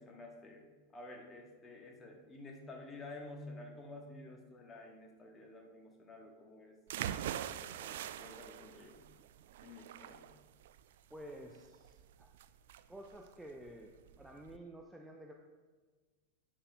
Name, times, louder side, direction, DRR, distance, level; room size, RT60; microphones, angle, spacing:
voice 1, 0.0-6.8 7.0-9.0 9.6-10.3, left 2 dB, 20° left, 1 dB, 1.5 m, -51 dB
sound 1, 6.9-14.6, right 11 dB, 55° right, 0.3 m, -44 dB
voice 2, 11.1-12.3 12.9-13.9 14.2-15.3, right 1 dB, 5° right, 1 dB, 0.7 m, -51 dB
10.5 x 8.8 x 2.4 m, 1.4 s
figure-of-eight pair, 90°, 0 cm